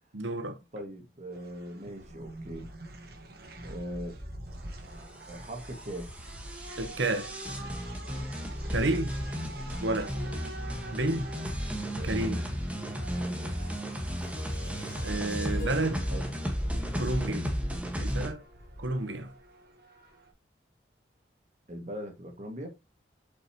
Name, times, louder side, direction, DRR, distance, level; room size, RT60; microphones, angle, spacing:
voice 1, 0.1-0.6 6.8-7.3 8.7-9.2 9.8-10.1 10.9-11.3 12.0-12.4 15.0-16.0 17.0-17.4 18.0-18.4 18.8-19.3, right 2 dB, 80° right, 1.1 m, -30 dB
voice 2, 0.7-2.7 3.6-4.2 5.3-6.1 12.0-12.5 15.9-16.3 16.7-17.5 21.7-22.7, equal, 40° right, 2.0 m, -40 dB
sound 1, 1.3-20.3, right 1 dB, 55° right, 1.5 m, -47 dB
sound 2, 5.0-18.3, equal, 5° right, 1.5 m, -34 dB
Harp, 14.2-19.2, left 2 dB, 55° left, 3.1 m, -49 dB
8.0 x 5.6 x 3.0 m
head